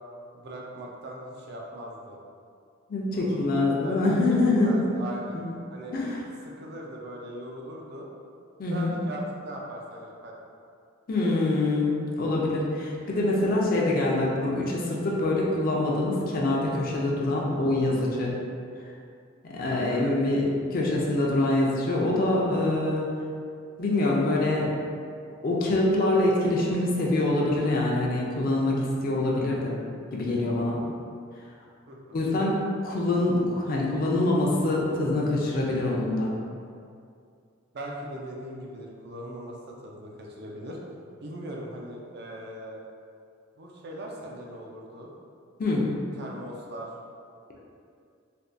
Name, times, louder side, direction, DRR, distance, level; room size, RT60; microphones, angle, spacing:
voice 1, 0.3-2.2 3.1-4.2 4.5-5.4 5.7-6.0 6.4-8.1 8.7-10.3 19.9-20.1 31.9-32.3 37.7-40.8 41.2-42.8 43.6-45.1 46.2-46.9, right 1 dB, 55° right, -1 dB, 0.4 m, -39 dB
voice 2, 2.9-4.7 5.3-5.4 5.9-6.2 8.6-8.9 11.1-18.3 19.5-23.1 23.8-24.7 25.4-29.8 30.1-30.8 32.1-36.3 45.6-45.8, left 2 dB, 45° left, -3 dB, 0.4 m, -25 dB
3.4 x 2.2 x 2.5 m, 2.3 s
head